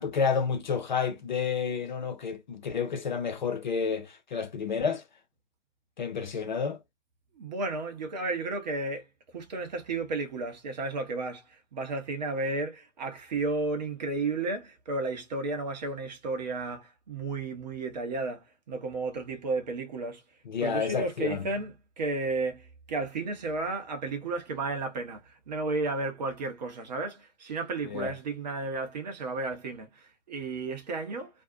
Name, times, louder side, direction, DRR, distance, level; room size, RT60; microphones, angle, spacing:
voice 1, 0.0-5.0 6.0-6.8 20.5-21.5 27.9-28.1, left 6 dB, 40° left, 0.5 m, -30 dB
voice 2, 7.4-9.0 9.3-20.2 20.6-31.3, right 3 dB, 35° right, 0.7 m, -33 dB
2.5 x 2.0 x 2.5 m
figure-of-eight pair, 135°, 37 cm